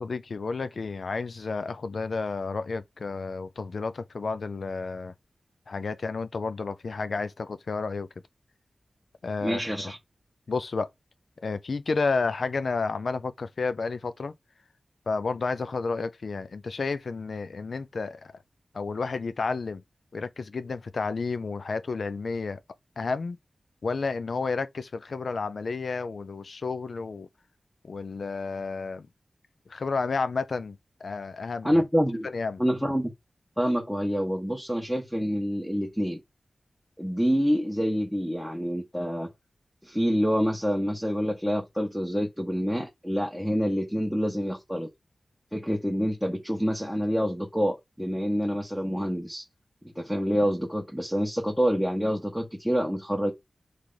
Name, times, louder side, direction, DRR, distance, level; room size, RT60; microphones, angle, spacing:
voice 1, 0.0-5.1 5.7-8.1 9.2-9.6 10.5-10.9 11.4-14.3 15.1-18.3 18.7-19.8 20.1-22.6 23.0-23.4 23.8-27.3 27.9-29.1 29.7-31.8 32.2-32.6, left 4 dB, 75° left, 0.4 m, -31 dB
voice 2, 9.4-10.0 31.6-32.3 32.6-33.1 33.6-36.2 37.0-39.3 39.8-44.9 45.5-49.4 49.9-53.3, equal, ahead, 1.1 m, -27 dB
3.3 x 2.9 x 3.9 m
cardioid pair, 50°, 0 cm